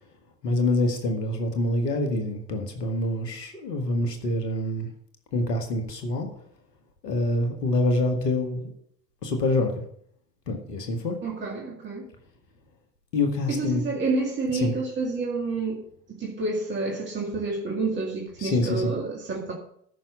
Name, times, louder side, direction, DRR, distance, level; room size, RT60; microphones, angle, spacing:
voice 1, 0.4-4.9 5.3-6.3 7.0-8.7 9.2-9.8 10.5-11.2 13.1-13.8 14.5-14.7 18.4-18.9, left 2 dB, 75° left, 4 dB, 1.8 m, -26 dB
voice 2, 11.2-12.1 13.5-15.8 16.2-19.5, right 3 dB, 20° right, -2 dB, 2.0 m, -29 dB
14.0 x 5.9 x 5.4 m, 0.67 s
figure-of-eight pair, 75°, 50 cm